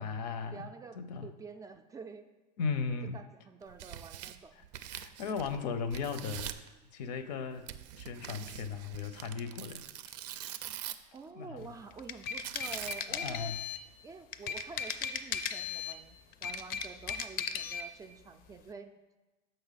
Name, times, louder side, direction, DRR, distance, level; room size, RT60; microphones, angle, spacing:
voice 1, 0.0-0.7 1.0-1.3 2.6-3.2 4.6-4.7 4.9-7.7 8.0-10.1 11.4-11.7 13.1-13.6, left 5 dB, 80° left, 11 dB, 0.7 m, -37 dB
voice 2, 0.5-2.3 3.1-4.5 11.1-13.6 14.0-18.9, right 4 dB, 15° right, 7 dB, 0.3 m, -48 dB
Tearing, 3.6-5.6 5.9-6.7 7.7-11.2 12.4-13.2, right 11 dB, 80° right, 0.5 m, -43 dB
sound 1, 11.9-13.9 14.3-16.0 16.3-17.9, left 7 dB, 45° left, 0.5 m, -36 dB
6.7 x 5.3 x 4.0 m, 1.1 s
supercardioid pair, 120°, 21 cm